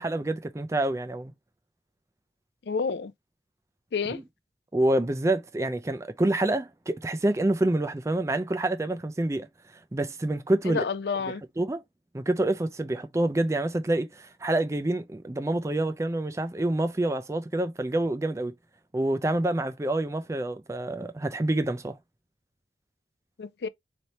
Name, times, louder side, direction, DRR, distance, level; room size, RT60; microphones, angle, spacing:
voice 1, 0.0-1.3 4.1-4.2 4.7-9.5 9.9-10.8 11.6-11.8 12.1-18.5 18.9-21.9, right 1 dB, 15° right, 0.4 m, -27 dB
voice 2, 2.6-3.1 3.9-4.2 10.7-11.4 23.4-23.7, left 5 dB, 70° left, 0.5 m, -29 dB
4.2 x 3.2 x 2.7 m
head